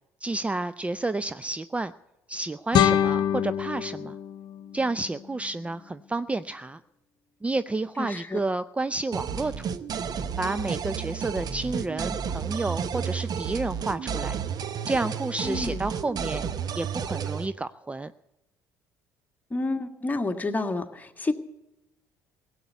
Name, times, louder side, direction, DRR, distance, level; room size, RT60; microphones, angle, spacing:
voice 1, 0.2-1.9 2.3-4.2 4.7-6.8 7.4-9.8 10.4-14.4 14.9-16.4 16.7-18.1, right 2 dB, 15° right, 14 dB, 0.5 m, -30 dB
sound 1, 2.7-5.7, left 9 dB, 60° left, 1.0 m, -26 dB
voice 2, 8.0-8.4 15.4-15.9 19.5-21.3, left 2 dB, 20° left, 5 dB, 1.7 m, -29 dB
sound 2, 9.1-17.5, right 7 dB, 50° right, 1.0 m, -32 dB
17.5 x 8.5 x 8.0 m, 0.95 s
hypercardioid pair, 60°, 9 cm